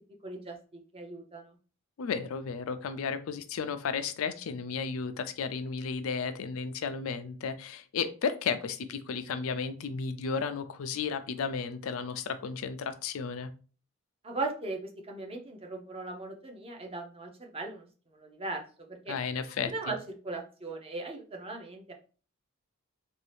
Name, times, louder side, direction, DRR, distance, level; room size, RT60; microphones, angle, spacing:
voice 1, 0.2-1.6 14.2-17.9 18.1-19.1 19.7-20.0 20.2-21.9, right 3 dB, 25° right, 3 dB, 0.5 m, -38 dB
voice 2, 2.0-13.5 19.1-19.7, left 5 dB, 70° left, 10 dB, 0.4 m, -33 dB
2.7 x 2.3 x 3.3 m, 0.37 s
head